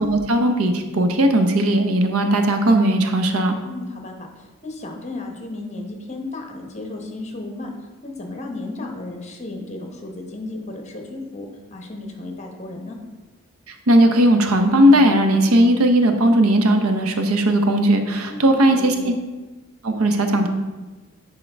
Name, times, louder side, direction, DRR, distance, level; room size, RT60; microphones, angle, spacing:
voice 1, 0.0-3.5 13.9-19.1 19.8-20.5, right 1 dB, 85° right, 6 dB, 0.7 m, -17 dB
voice 2, 3.6-7.7 8.0-13.0 18.2-19.1, left 2 dB, 30° left, 2 dB, 0.9 m, -34 dB
10.0 x 3.7 x 3.4 m, 1.2 s
head